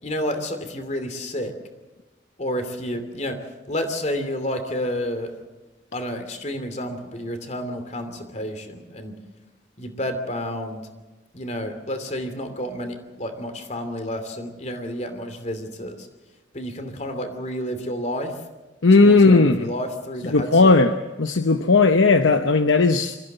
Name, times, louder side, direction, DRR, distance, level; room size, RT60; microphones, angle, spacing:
voice 1, 0.0-1.5 2.4-5.3 5.9-9.2 9.8-10.8 11.3-16.1 16.5-18.4 19.0-20.8, equal, 35° left, 7 dB, 2.8 m, -30 dB
voice 2, 18.8-19.7 20.3-20.9 21.2-23.2, left 3 dB, 85° left, 8 dB, 0.9 m, -16 dB
24.0 x 15.0 x 8.0 m, 1.2 s
head